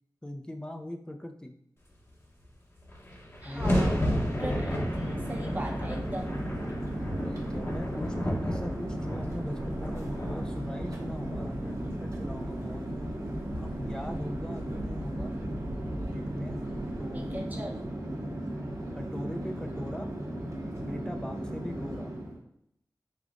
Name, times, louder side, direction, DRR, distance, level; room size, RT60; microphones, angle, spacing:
voice 1, 0.2-1.5 3.4-3.9 5.2-5.3 7.2-12.8 13.6-15.4 15.9-16.6 17.0-17.3 19.0-20.1 20.7-22.1, left 1 dB, 10° left, 3 dB, 0.4 m, -40 dB
sound 1, 2.4-2.5 2.7-17.0, equal, 35° left, 0.8 m, -34 dB
voice 2, 3.4-6.4 17.1-17.8, right 1 dB, 20° right, 0 dB, 0.7 m, -39 dB
Chatter / Fixed-wing aircraft airplane, 3.5-22.4, right 1 dB, 45° right, 0.9 m, -36 dB
sound 2, 3.8-17.4, right 1 dB, 80° right, 1.1 m, -43 dB
5.0 x 3.6 x 2.5 m, 0.73 s
wide cardioid pair, 75°, 7 cm